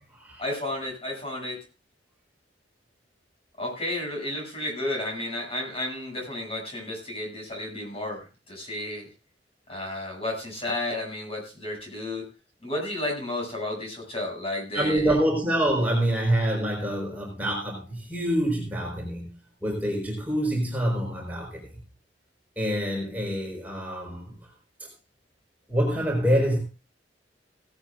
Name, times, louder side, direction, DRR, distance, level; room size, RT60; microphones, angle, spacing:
voice 1, 0.4-1.6 3.6-9.1 9.7-12.3 12.6-15.2, left 1 dB, 35° left, 0 dB, 7.8 m, -32 dB
voice 2, 14.7-19.3 19.6-21.7 22.6-24.3 25.7-26.6, right 1 dB, 10° right, -1 dB, 5.2 m, -26 dB
17.5 x 14.0 x 2.6 m, 0.31 s
head